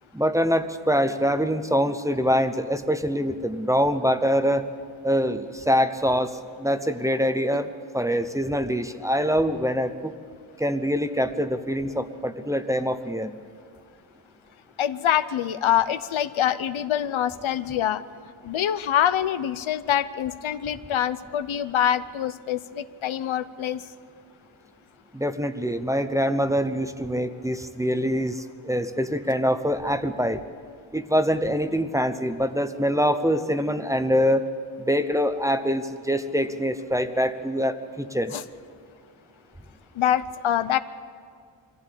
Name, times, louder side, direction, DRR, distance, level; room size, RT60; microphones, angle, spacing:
voice 1, 0.1-4.6 5.0-6.3 6.6-10.1 10.6-13.3 25.1-30.4 30.9-34.4 34.8-38.4, equal, 5° right, 9 dB, 0.8 m, -24 dB
voice 2, 14.8-18.0 18.4-23.8 38.3-38.4 40.0-40.8, left 10 dB, 90° left, 13 dB, 0.9 m, -25 dB
23.0 x 15.0 x 8.4 m, 2.1 s
wide cardioid pair, 140°, 46 cm